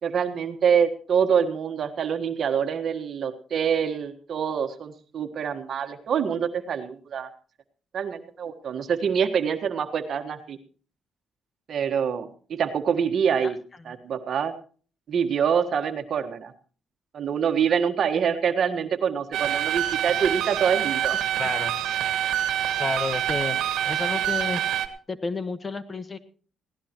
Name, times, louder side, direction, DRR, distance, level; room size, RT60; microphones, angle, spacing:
voice 1, 0.0-7.3 7.9-10.6 11.7-13.6 13.8-14.5 15.1-16.5 17.1-21.2, right 7 dB, 60° right, 7 dB, 1.5 m, -25 dB
sound 1, 19.3-24.9, right 11 dB, 85° right, 1.5 m, -26 dB
voice 2, 21.4-21.7 22.8-23.6 23.8-24.6 25.1-26.2, left 3 dB, 30° left, 12 dB, 1.3 m, -30 dB
20.0 x 17.0 x 3.0 m, 0.41 s
cardioid pair, 90°, 0 cm